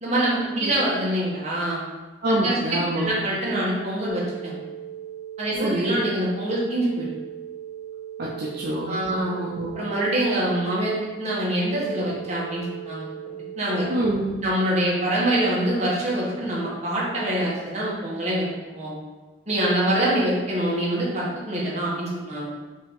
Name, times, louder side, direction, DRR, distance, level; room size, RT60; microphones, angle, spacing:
voice 1, 0.0-1.8 2.4-4.5 5.4-7.1 8.9-9.2 9.7-13.0 13.6-13.9 14.4-18.5 18.7-18.9 19.5-22.5, right 1 dB, 40° right, -6 dB, 1.4 m, -25 dB
voice 2, 2.2-3.2 5.6-6.0 8.2-9.7 13.9-14.5, right 1 dB, 60° right, -6 dB, 0.6 m, -26 dB
sound 1, 4.1-14.1, right 10 dB, 15° left, 0.5 m, -38 dB
5.0 x 2.8 x 3.7 m, 1.2 s
head